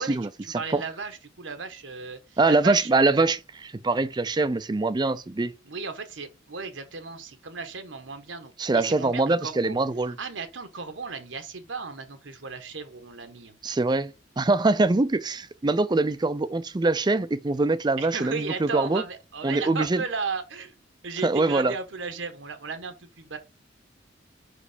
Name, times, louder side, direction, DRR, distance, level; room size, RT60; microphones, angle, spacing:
voice 1, 0.0-3.2 5.6-9.8 10.2-13.6 18.0-20.8 21.0-23.4, right 4 dB, 80° right, 1.2 m, -35 dB
voice 2, 2.4-5.5 8.6-10.1 13.6-19.0 19.4-20.0 21.2-21.7, right 3 dB, 20° right, 0.4 m, -23 dB
5.3 x 5.1 x 4.9 m
head